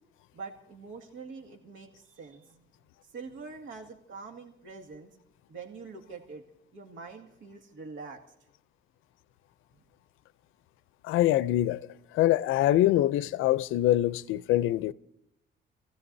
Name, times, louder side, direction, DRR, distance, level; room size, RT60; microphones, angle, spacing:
voice 1, 0.3-2.7 3.0-5.1 5.5-6.4 6.7-8.2, right 4 dB, 75° right, 2.1 m, -44 dB
voice 2, 11.1-11.8 12.1-14.9, left 14 dB, 90° left, 0.5 m, -24 dB
30.0 x 15.5 x 2.7 m
cardioid pair, 90°, 20 cm